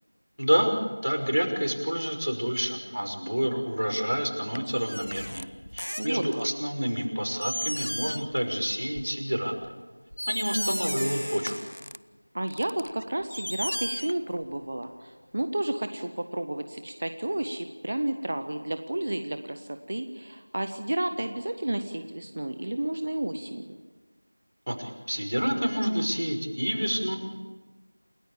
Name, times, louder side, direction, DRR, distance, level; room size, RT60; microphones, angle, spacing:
voice 1, 0.4-0.7 1.0-5.5 5.7-9.5 10.3-11.6 24.7-27.2, equal, 85° right, 3 dB, 5.7 m, -28 dB
sound 1, 4.6-6.5 7.0-7.1 7.4-8.4 8.8-9.1 9.6-9.7 10.1-12.0 12.5-14.6 14.8-14.9, left 1 dB, 55° left, 0.7 m, -35 dB
voice 2, 6.0-6.5 12.3-23.7, right 1 dB, 20° right, 8 dB, 0.6 m, -31 dB
28.5 x 14.0 x 8.8 m, 1.3 s
figure-of-eight pair, 180°, 0 cm